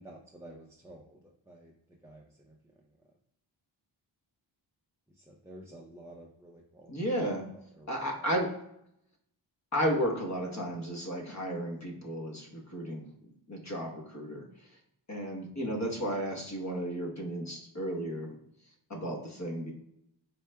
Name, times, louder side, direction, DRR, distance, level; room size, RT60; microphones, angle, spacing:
voice 1, 0.0-1.8 2.0-2.7 5.1-7.1 7.4-8.3 15.6-15.9, right 1 dB, 5° right, -3 dB, 0.4 m, -52 dB
voice 2, 6.9-7.5 7.9-8.5 9.7-13.1 13.5-14.7 15.1-18.4 18.9-19.7, equal, 35° left, 1 dB, 1.0 m, -33 dB
4.6 x 3.1 x 2.2 m, 0.77 s
wide cardioid pair, 85°, 46 cm